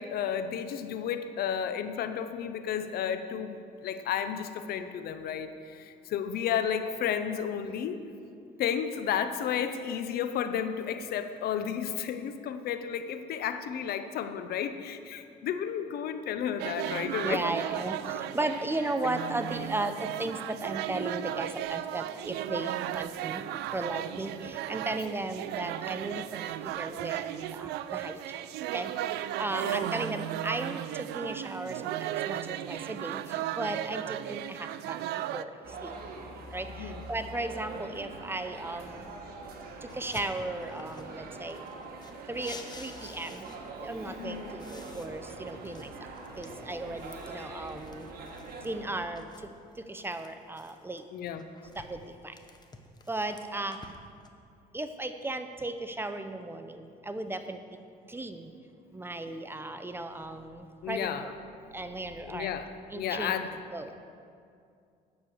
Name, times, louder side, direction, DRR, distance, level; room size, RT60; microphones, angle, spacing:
voice 1, 0.0-3.6 3.8-8.0 8.6-17.4 22.5-22.8 29.6-29.8 36.7-37.1 44.1-44.6 51.1-51.5 60.8-61.3 62.2-63.6, left 8 dB, 65° left, 10 dB, 0.7 m, -32 dB
sound 1, 16.6-35.4, right 12 dB, 80° right, 0.4 m, -35 dB
voice 2, 17.2-23.4 23.7-26.4 26.6-28.2 28.7-28.9 29.4-35.0 35.3-35.5 35.8-35.9 36.5-39.0 39.8-41.6 42.3-43.5 43.8-45.9 46.4-48.1 48.6-49.2 49.9-51.0 51.8-52.4 53.1-53.8 54.7-57.6 58.1-58.5 58.9-61.3 61.7-62.6 62.9-63.4 63.7-63.9, right 2 dB, 15° right, 8 dB, 0.6 m, -36 dB
sound 2, 35.6-49.1, right 3 dB, 65° right, 1.4 m, -44 dB
sound 3, 39.9-41.2 41.5-43.9 44.2-48.7 49.2-51.0 51.4-54.3, left 3 dB, 25° left, 0.9 m, -51 dB
9.5 x 6.7 x 7.1 m, 2.4 s
cardioid pair, 110°, 17 cm